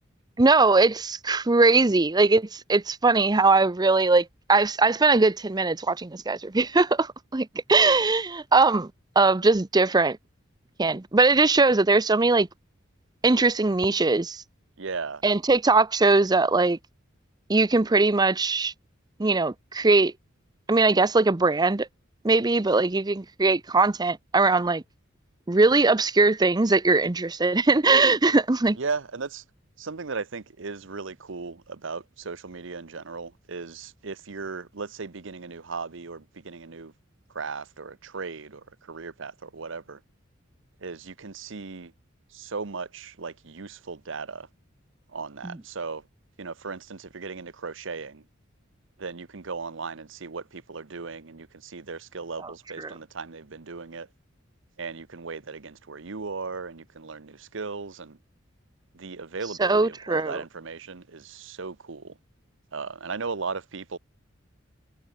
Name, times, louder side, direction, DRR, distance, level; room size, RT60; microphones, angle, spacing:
voice 1, 0.4-8.9 9.2-10.2 10.8-12.5 13.2-14.4 15.2-16.8 17.5-18.7 19.2-20.1 20.7-21.9 22.2-24.8 25.5-28.8 52.8-52.9 59.6-60.4, right 3 dB, 20° right, 0.7 m, -21 dB
voice 2, 14.8-15.2 28.8-29.4 29.8-36.9 37.3-40.0 40.8-41.9 42.3-44.5 45.1-46.0 46.4-48.2 49.0-54.1 54.8-58.2 58.9-62.2 62.7-64.0, right 4 dB, 70° right, 1.0 m, -36 dB
head